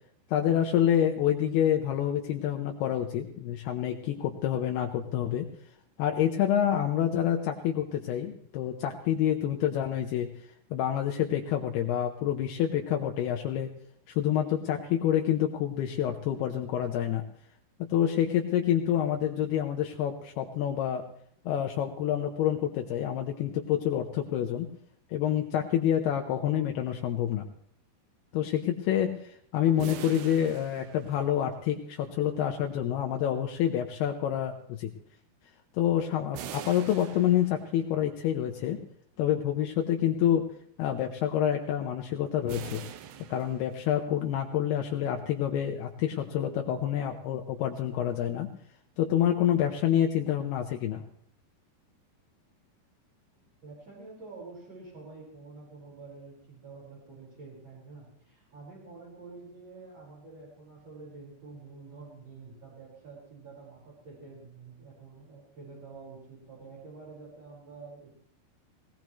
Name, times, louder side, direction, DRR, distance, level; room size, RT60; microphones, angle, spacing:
voice 1, 0.3-5.5 6.0-10.3 10.7-13.7 14.1-17.2 17.9-21.1 21.5-24.7 25.1-27.4 28.3-34.9 35.7-38.8 39.2-40.5 40.8-42.8 43.3-48.5 49.0-51.0, left 10 dB, 75° left, 3 dB, 2.7 m, -27 dB
sound 1, 29.8-31.7 36.3-38.0 42.5-44.1, right 9 dB, 85° right, 3.0 m, -43 dB
voice 2, 53.6-68.1, right 4 dB, 40° right, -8 dB, 5.8 m, -48 dB
20.0 x 18.5 x 3.1 m, 0.64 s
omnidirectional pair, 4.8 m